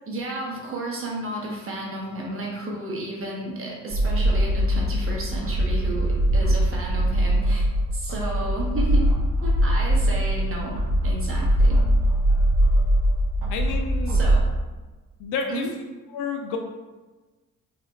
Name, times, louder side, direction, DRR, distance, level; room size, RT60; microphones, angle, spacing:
voice 1, 0.1-7.7 7.9-9.1 9.4-10.8 11.0-11.8 14.1-14.5 15.5-15.7, right 1 dB, 30° right, -2 dB, 1.1 m, -32 dB
sound 1, 3.9-14.4, right 1 dB, 50° right, 0.7 m, -21 dB
voice 2, 13.5-14.2 15.2-15.7 16.1-16.6, left 5 dB, 50° left, 3 dB, 0.4 m, -30 dB
4.0 x 3.1 x 2.3 m, 1.2 s
figure-of-eight pair, 45°, 41 cm